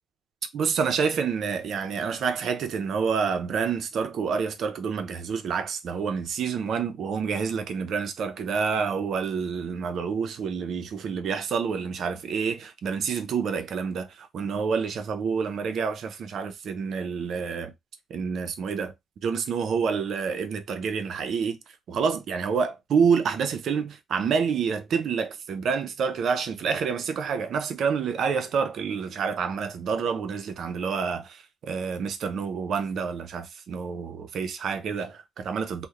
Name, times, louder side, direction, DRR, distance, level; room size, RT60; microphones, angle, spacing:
voice 1, 0.5-17.7 18.1-18.9 19.2-21.6 21.9-35.9, right 6 dB, 65° right, 0.4 m, -28 dB
2.8 x 2.0 x 2.3 m
cardioid pair, 90°, 0 cm